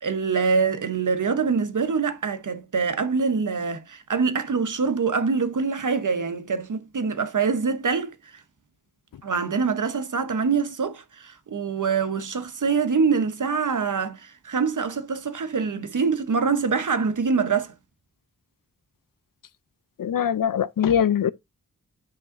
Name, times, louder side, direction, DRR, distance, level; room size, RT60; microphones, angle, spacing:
voice 1, 0.0-8.4 9.2-17.7, right 5 dB, 65° right, 1.0 m, -25 dB
voice 2, 20.0-21.3, left 9 dB, 75° left, 0.6 m, -22 dB
9.6 x 5.5 x 2.6 m
cardioid pair, 50°, 33 cm